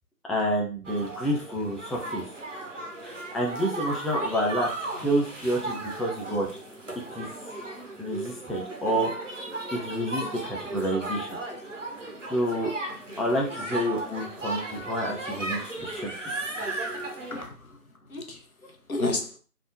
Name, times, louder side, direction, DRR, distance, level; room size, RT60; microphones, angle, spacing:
voice 1, 0.3-2.2 3.0-4.7 5.0-6.5 7.1-7.3 8.0-9.1 9.7-11.4 12.3-12.7 13.2-16.1, equal, ahead, 0.4 m, -28 dB
sound 1, 0.8-17.5, right 2 dB, 50° right, 0.8 m, -36 dB
voice 2, 17.3-19.4, left 2 dB, 60° left, 0.8 m, -33 dB
3.4 x 2.4 x 2.5 m
figure-of-eight pair, 170°, 47 cm